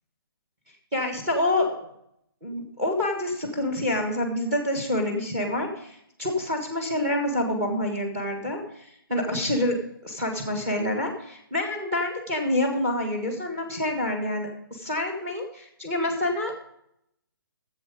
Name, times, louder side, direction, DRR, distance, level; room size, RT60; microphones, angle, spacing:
voice 1, 0.9-1.9 2.4-9.8 10.0-16.6, left 1 dB, 15° right, 3 dB, 1.4 m, -27 dB
11.5 x 7.7 x 4.9 m, 0.74 s
hypercardioid pair, 175°, 12 cm